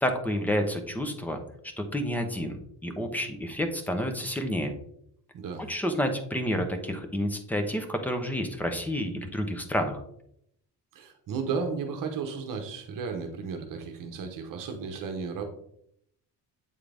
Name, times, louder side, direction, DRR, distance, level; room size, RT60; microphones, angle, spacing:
voice 1, 0.0-1.4 1.8-4.7 5.7-10.0, equal, 5° left, 6 dB, 0.6 m, -29 dB
voice 2, 5.3-5.7 10.9-15.4, right 5 dB, 55° right, 4 dB, 0.9 m, -34 dB
8.4 x 3.8 x 3.3 m, 0.72 s
cardioid pair, 165°, 39 cm